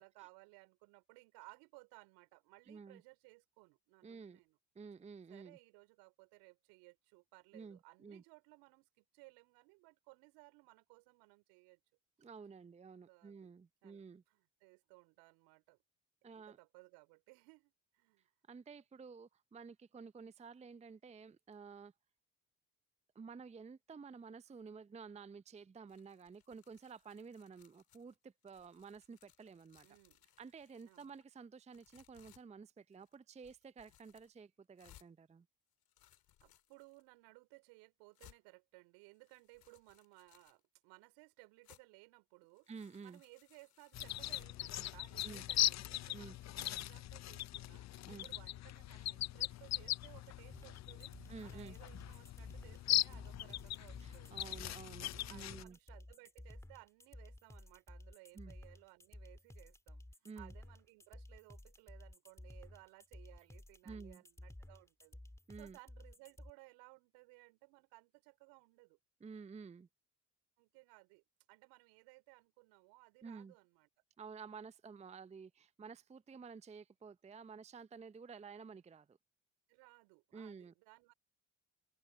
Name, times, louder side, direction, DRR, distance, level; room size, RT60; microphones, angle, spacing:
voice 1, 0.0-4.6 5.3-11.8 13.1-15.8 16.3-18.3 29.8-30.2 30.8-31.1 36.4-42.7 43.0-54.3 55.3-65.2 65.6-69.0 70.6-71.2 71.5-73.9 79.7-81.1, right 27 dB, 75° right, 4.4 m, -61 dB
voice 2, 2.7-3.0 4.0-4.4 4.8-5.6 7.5-8.2 12.2-14.2 16.2-16.6 18.5-21.9 23.1-29.9 30.4-35.5 42.7-43.2 45.2-45.4 46.1-46.4 48.1-48.3 51.3-51.8 54.0-55.8 58.3-58.5 60.2-60.5 63.9-64.2 65.5-65.8 69.2-69.9 73.2-73.5 74.2-79.2 80.3-80.7, right 5 dB, 15° right, 0.6 m, -52 dB
sound 1, 25.9-28.1 28.4-31.2 31.7-32.4 32.9-33.2 33.4-34.3 34.8-35.1 35.7-37.0 37.6-37.7 38.1-38.4 39.1-40.6 41.6-41.8 42.4-44.4, left 13 dB, 60° left, 3.0 m, -67 dB
sound 2, 43.9-55.6, left 14 dB, 40° left, 0.6 m, -40 dB
sound 3, 50.5-66.5, left 1 dB, 5° left, 2.1 m, -54 dB
hypercardioid pair, 55°, 41 cm